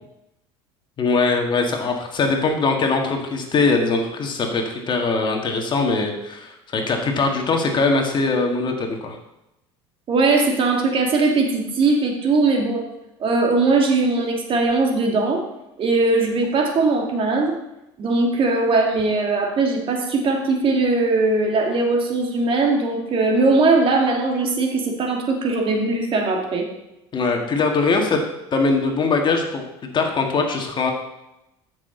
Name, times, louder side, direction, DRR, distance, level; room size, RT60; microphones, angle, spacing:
voice 1, 1.0-9.2 27.1-28.2 28.5-29.7 29.9-30.9, left 3 dB, 35° left, 3 dB, 2.0 m, -21 dB
voice 2, 10.1-12.8 13.2-15.4 15.8-17.5 18.0-26.7, right 3 dB, 40° right, 2 dB, 2.2 m, -20 dB
13.0 x 6.4 x 4.0 m, 0.89 s
hypercardioid pair, 90°, 13 cm